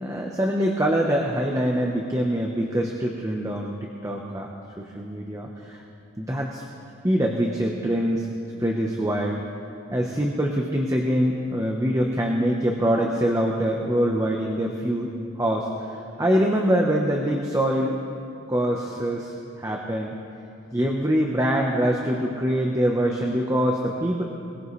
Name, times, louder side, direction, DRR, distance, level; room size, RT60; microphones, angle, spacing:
voice 1, 0.0-4.5 4.8-5.8 6.2-6.6 7.0-8.3 8.6-9.4 9.9-15.1 15.4-15.7 16.2-18.0 18.5-20.1 20.7-24.2, equal, 15° right, 0 dB, 0.9 m, -24 dB
21.5 x 18.5 x 3.2 m, 2.6 s
head